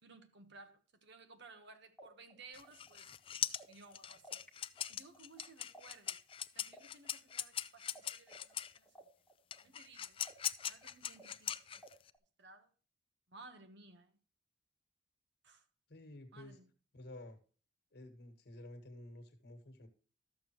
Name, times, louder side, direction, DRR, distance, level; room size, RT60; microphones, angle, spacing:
voice 1, 0.0-3.1 3.7-4.4 4.9-6.2 6.5-8.9 9.6-10.2 10.7-11.8 12.4-12.7 13.3-14.2 15.4-15.7 16.3-16.7, right 3 dB, 60° right, 1.2 m, -58 dB
sound 1, 2.0-4.5 4.8-8.0 8.3-12.2, right 1 dB, 5° left, 1.3 m, -59 dB
sound 2, 2.5-8.8 9.5-12.1, left 10 dB, 30° left, 0.4 m, -41 dB
voice 2, 15.9-16.6 16.9-17.4 17.9-19.9, left 1 dB, 55° left, 1.6 m, -52 dB
13.0 x 7.1 x 3.0 m
head